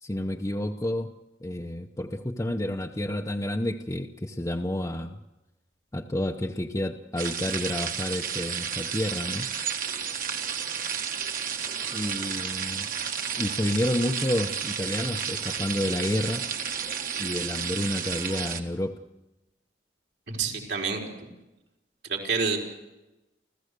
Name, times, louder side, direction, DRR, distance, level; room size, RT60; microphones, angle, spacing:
voice 1, 0.0-1.1 1.4-5.2 5.9-9.5 11.9-12.9 13.4-16.4 17.2-18.9, left 1 dB, 20° left, 2 dB, 0.7 m, -30 dB
sound 1, 7.2-18.6, right 7 dB, 50° right, 1.6 m, -32 dB
voice 2, 20.3-21.0 22.1-22.6, right 5 dB, 75° right, 0 dB, 4.1 m, -27 dB
30.0 x 14.5 x 6.7 m, 1.0 s
head